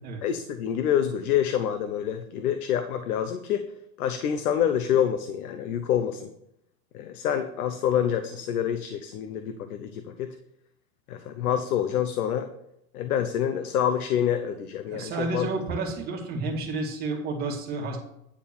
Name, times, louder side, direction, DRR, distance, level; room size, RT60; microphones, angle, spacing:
voice 1, 0.2-3.6 4.0-6.3 6.9-10.3 11.1-12.5 12.9-15.5, left 9 dB, 85° left, 8 dB, 1.0 m, -27 dB
voice 2, 14.9-18.0, right 3 dB, 20° right, 0 dB, 2.2 m, -31 dB
10.0 x 4.4 x 7.0 m, 0.78 s
supercardioid pair, 170°, 43 cm